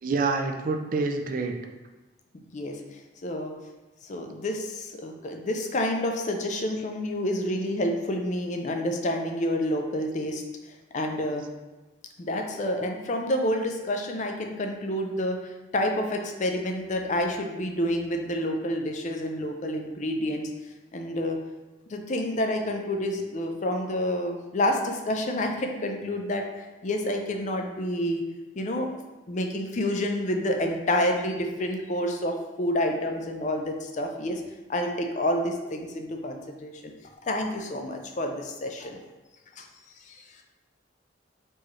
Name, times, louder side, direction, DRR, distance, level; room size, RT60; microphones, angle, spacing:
voice 1, 0.0-1.5 6.5-6.6, right 4 dB, 45° right, 4 dB, 0.4 m, -27 dB
voice 2, 2.3-2.8 3.2-3.5 4.1-10.4 10.9-11.4 12.2-15.4 15.7-20.5 20.9-21.4 21.9-26.4 26.8-28.2 28.6-28.9 29.3-34.4 34.7-36.7 37.2-39.0 39.6-39.7 40.1-40.2, left 1 dB, 40° left, 3 dB, 0.4 m, -28 dB
4.4 x 3.2 x 3.0 m, 1.1 s
head